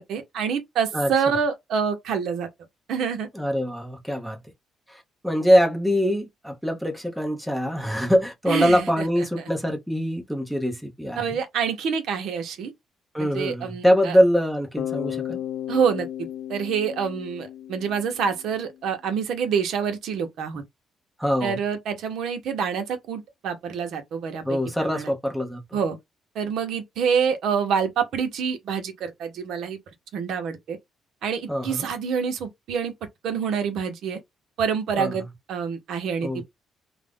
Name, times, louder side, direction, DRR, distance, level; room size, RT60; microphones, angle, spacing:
voice 1, 0.0-2.5 2.9-3.3 8.5-9.4 11.2-12.7 13.2-14.2 15.7-20.6 21.4-25.1 25.7-26.0 26.3-29.8 30.1-30.8 31.2-32.9 33.2-34.2 34.6-35.2 35.5-36.4, right 6 dB, 75° right, 0.7 m, -27 dB
voice 2, 3.3-4.4 4.9-11.4 13.1-15.4 21.2-21.6 24.4-25.8 31.5-31.9 35.0-35.3 36.2-36.4, equal, 5° right, 0.6 m, -23 dB
Bass guitar, 14.8-18.7, left 11 dB, 80° left, 0.4 m, -34 dB
2.4 x 2.1 x 3.4 m
cardioid pair, 140°, 0 cm